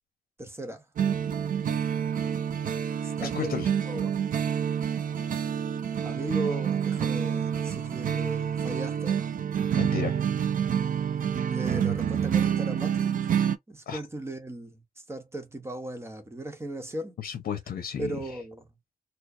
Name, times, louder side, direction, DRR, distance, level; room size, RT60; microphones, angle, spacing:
voice 1, 0.4-0.8 3.0-4.1 6.0-9.2 11.4-13.1 13.7-14.8 15.1-17.2 18.0-18.7, right 1 dB, 15° right, 0.9 m, -37 dB
sound 1, 1.0-13.6, right 8 dB, 60° right, 0.5 m, -28 dB
voice 2, 3.2-3.7 9.8-10.2 13.9-14.0 17.2-18.4, left 7 dB, 75° left, 0.8 m, -33 dB
4.5 x 2.0 x 2.6 m
wide cardioid pair, 145°, 15 cm